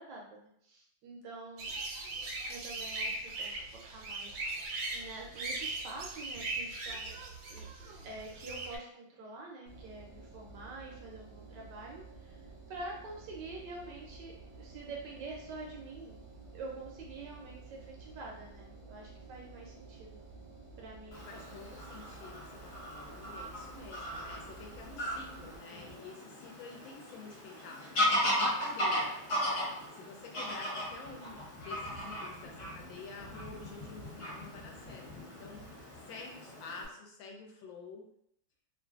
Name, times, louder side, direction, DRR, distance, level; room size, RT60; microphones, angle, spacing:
voice 1, 0.0-1.7 2.5-7.2 7.5-12.4 12.7-16.2 16.5-20.2 20.8-21.6, right 2 dB, 75° right, -1 dB, 1.1 m, -47 dB
sound 1, 1.6-8.8, right 2 dB, 90° right, 1.4 m, -39 dB
Engine, 9.7-25.6, right 3 dB, 55° right, 0.6 m, -52 dB
Fowl / Bird vocalization bird call bird song, 21.1-36.8, equal, 45° left, 1.2 m, -37 dB
voice 2, 21.3-29.2 29.6-35.6 36.1-38.1, left 4 dB, 80° left, 0 dB, 1.3 m, -49 dB
3.1 x 2.4 x 2.3 m, 0.71 s
omnidirectional pair, 2.2 m